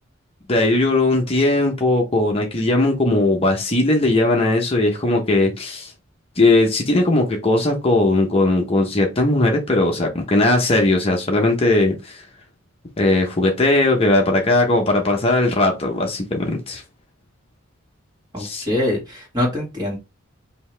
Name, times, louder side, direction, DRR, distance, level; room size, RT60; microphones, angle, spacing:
voice 1, 0.5-5.9 6.4-12.2 13.0-16.8 18.4-18.6, left 2 dB, 30° left, 0.8 m, -18 dB
voice 2, 18.3-20.0, left 1 dB, 20° right, 2.0 m, -24 dB
5.3 x 2.8 x 3.3 m
head